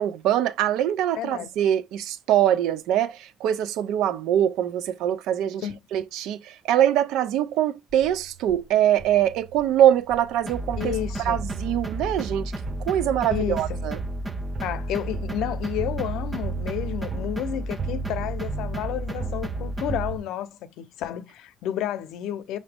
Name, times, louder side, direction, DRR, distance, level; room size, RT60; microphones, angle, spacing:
voice 1, 0.0-11.0 11.2-12.5 12.8-14.0, right 11 dB, 85° right, 0.4 m, -23 dB
voice 2, 1.2-1.5 5.6-5.8 10.8-11.4 13.3-13.8 14.6-22.6, left 11 dB, 85° left, 0.6 m, -31 dB
sound 1, 7.9-20.2, right 9 dB, 40° right, 0.8 m, -37 dB
sound 2, 10.5-20.1, right 1 dB, 10° right, 0.3 m, -32 dB
5.9 x 2.7 x 3.3 m
cardioid pair, 175°, 0 cm